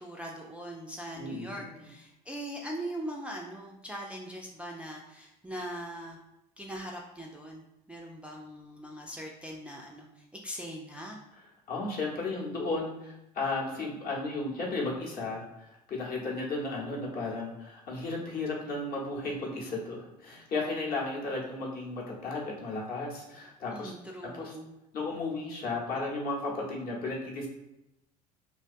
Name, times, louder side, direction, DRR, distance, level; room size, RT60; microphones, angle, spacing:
voice 1, 0.0-6.2 6.6-7.6 7.9-11.2 23.7-24.7, right 1 dB, 5° right, -1 dB, 0.3 m, -41 dB
voice 2, 1.2-1.9 11.7-23.9 24.3-24.5 24.9-27.5, left 3 dB, 50° left, -2 dB, 0.9 m, -34 dB
2.5 x 2.2 x 2.5 m, 0.90 s
hypercardioid pair, 70°, 20 cm